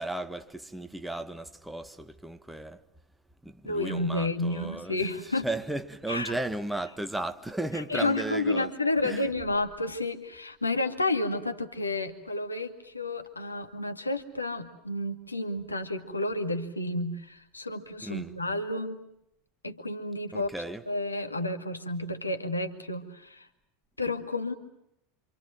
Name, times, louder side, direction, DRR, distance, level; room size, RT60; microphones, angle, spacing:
voice 1, 0.0-2.8 3.4-8.7 9.0-9.3 18.0-18.3 20.3-20.8, right 2 dB, 5° right, 1.5 m, -35 dB
voice 2, 3.6-5.5 6.1-6.3 7.9-19.0 19.6-20.5 20.9-23.5 24.0-24.5, left 2 dB, 90° left, 2.2 m, -31 dB
28.0 x 27.5 x 7.7 m
figure-of-eight pair, 80°, 0 cm